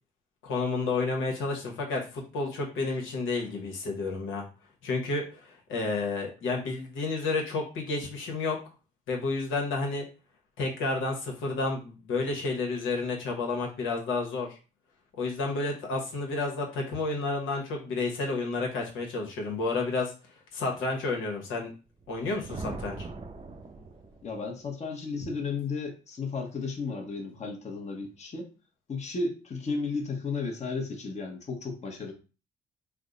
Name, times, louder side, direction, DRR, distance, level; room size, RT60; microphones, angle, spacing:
voice 1, 0.4-4.4 4.8-8.6 9.1-10.0 10.6-14.5 15.2-20.1 20.5-21.7 22.1-23.0, left 3 dB, 85° left, 0 dB, 1.0 m, -30 dB
Thunder, 22.0-24.4, right 3 dB, 25° right, 0.5 m, -41 dB
voice 2, 24.2-28.5 28.9-32.1, left 4 dB, 35° left, 3 dB, 0.9 m, -34 dB
3.4 x 2.1 x 3.7 m, 0.33 s
cardioid pair, 90°, 20 cm